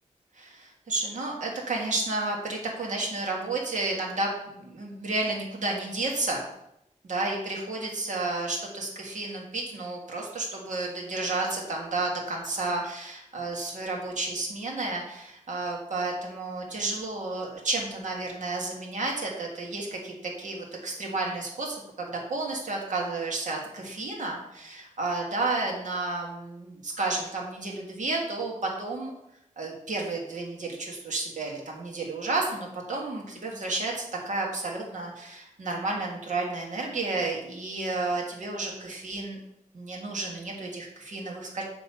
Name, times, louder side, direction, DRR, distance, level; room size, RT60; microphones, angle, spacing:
voice 1, 0.3-6.4 7.0-28.5 28.8-29.1 29.6-39.4 39.7-41.6, right 2 dB, 75° right, -1 dB, 1.6 m, -31 dB
7.8 x 3.0 x 5.5 m, 0.81 s
wide cardioid pair, 140°, 13 cm